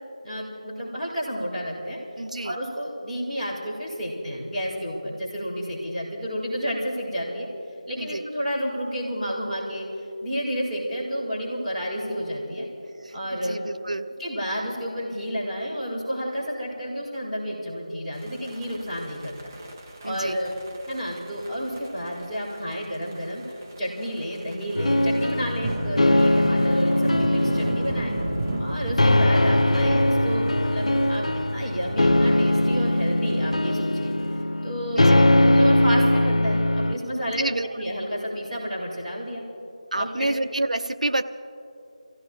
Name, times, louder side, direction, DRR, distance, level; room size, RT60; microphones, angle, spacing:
voice 1, 0.2-2.0 2.4-7.5 7.9-9.9 10.2-12.7 13.1-13.6 14.2-19.5 20.0-20.5 20.9-23.4 23.8-28.2 28.6-34.1 34.6-35.0 35.4-37.5 37.7-39.4 39.9-40.3, equal, ahead, -21 dB, 4.4 m, -30 dB
voice 2, 2.2-2.6 7.9-8.2 13.0-14.1 20.0-20.4 34.9-35.3 37.2-37.7 39.9-41.2, right 2 dB, 75° right, 8 dB, 0.8 m, -28 dB
sound 1, 18.1-34.4, right 2 dB, 20° right, 0.9 m, -35 dB
sound 2, 24.8-36.9, left 1 dB, 65° left, 0.9 m, -21 dB
27.0 x 16.5 x 3.1 m, 2.7 s
figure-of-eight pair, 170°, 4 cm